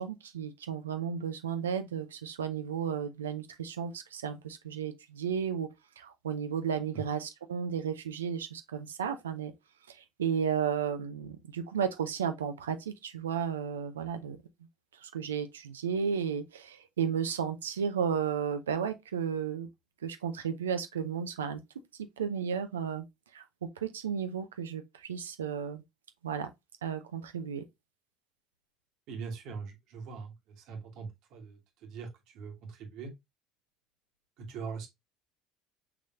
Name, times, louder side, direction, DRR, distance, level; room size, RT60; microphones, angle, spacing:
voice 1, 0.0-5.7 6.0-9.5 9.9-14.4 15.0-19.7 20.0-21.6 22.2-23.0 23.3-23.4 23.8-25.8 26.2-26.5 26.8-27.7, right 7 dB, 85° right, 0.6 m, -33 dB
voice 2, 29.1-33.1 34.4-34.9, right 5 dB, 60° right, 1.4 m, -42 dB
5.8 x 3.1 x 2.4 m
hypercardioid pair, 65°, 0 cm